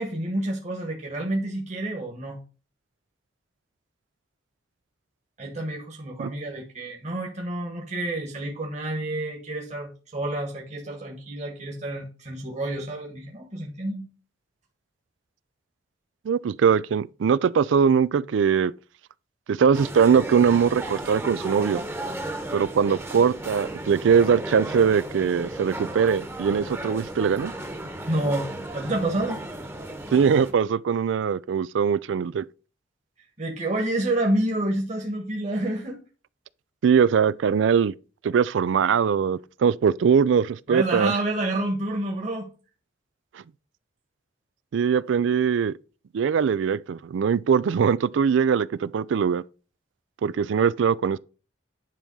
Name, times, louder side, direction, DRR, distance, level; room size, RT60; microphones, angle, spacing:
voice 1, 0.0-2.4 5.4-14.1 28.1-29.4 33.4-36.0 40.7-42.5, right 1 dB, 40° right, 1.4 m, -29 dB
voice 2, 16.3-18.7 19.5-21.8 22.5-27.5 30.1-32.4 36.8-37.9 38.2-41.1 44.7-45.7 46.1-49.4 50.2-51.2, right 6 dB, 80° right, 0.4 m, -21 dB
sound 1, 19.7-30.5, right 1 dB, 15° right, 1.0 m, -35 dB
10.0 x 3.6 x 5.4 m
head